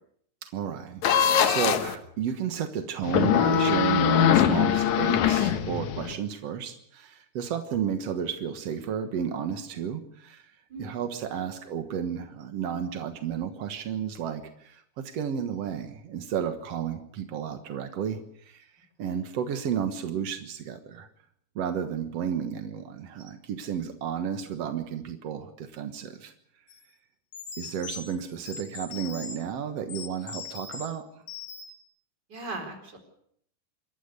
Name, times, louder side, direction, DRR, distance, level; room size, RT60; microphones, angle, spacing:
voice 1, 0.4-10.4 10.8-18.7 19.0-21.1 21.5-26.3 27.6-31.0, right 8 dB, 75° right, 7 dB, 1.4 m, -32 dB
sound 1, 1.0-1.9 3.0-6.1, left 8 dB, 65° left, 2.0 m, -22 dB
sound 2, 26.7-26.8 27.3-29.4 29.9-30.9 31.3-31.8, left 6 dB, 80° left, 6.0 m, -40 dB
voice 2, 32.3-33.0, right 2 dB, 25° right, 4 dB, 4.4 m, -38 dB
26.5 x 13.5 x 8.2 m, 0.69 s
omnidirectional pair, 5.0 m